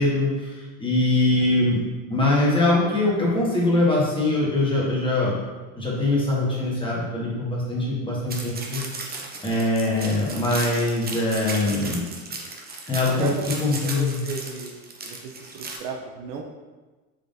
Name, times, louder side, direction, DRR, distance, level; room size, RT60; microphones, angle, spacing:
voice 1, 0.0-1.8 2.1-5.4 5.7-8.8 9.4-12.0 12.9-13.3 13.6-14.2, left 2 dB, 10° left, -6 dB, 1.3 m, -22 dB
sound 1, 8.3-15.8, right 3 dB, 20° right, 0.6 m, -35 dB
voice 2, 13.1-14.8 15.0-16.4, right 5 dB, 65° right, 2 dB, 0.6 m, -34 dB
3.8 x 3.2 x 2.6 m, 1.3 s
hypercardioid pair, 80°, 43 cm